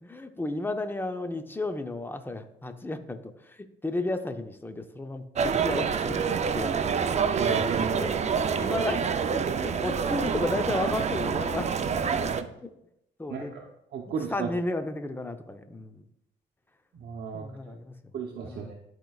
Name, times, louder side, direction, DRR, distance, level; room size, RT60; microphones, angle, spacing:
voice 1, 0.0-6.2 6.5-6.8 7.9-11.8 13.2-13.5 14.3-16.0 17.3-17.9 18.4-18.7, left 2 dB, 10° left, 8 dB, 0.6 m, -33 dB
sound 1, 5.4-12.4, right 6 dB, 35° right, 0.5 m, -27 dB
voice 2, 7.3-8.0 13.3-13.6 13.9-14.5 16.9-17.4 18.1-18.7, right 6 dB, 60° right, 0 dB, 0.8 m, -33 dB
11.5 x 4.5 x 2.3 m, 0.82 s
cardioid pair, 90°, 20 cm